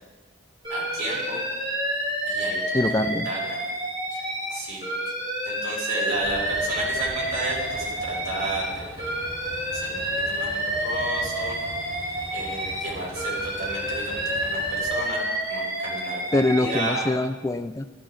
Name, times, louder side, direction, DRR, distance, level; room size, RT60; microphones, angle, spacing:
Alarm, 0.6-4.5 4.8-8.7 9.0-12.9 13.1-17.0, right 1 dB, 20° right, 3.5 m, -29 dB
voice 1, 0.7-1.4 2.3-2.8 3.2-3.6 4.1-4.3 4.5-4.9 5.5-9.1 9.7-10.0 10.3-11.6 12.3-15.2 15.5-17.1, right 2 dB, 75° right, -5 dB, 3.8 m, -32 dB
voice 2, 2.7-3.3 16.3-17.9, left 2 dB, 15° left, 9 dB, 0.3 m, -24 dB
Train, 6.1-14.9, left 1 dB, 50° left, 2.1 m, -42 dB
12.0 x 11.5 x 3.7 m, 1.3 s
head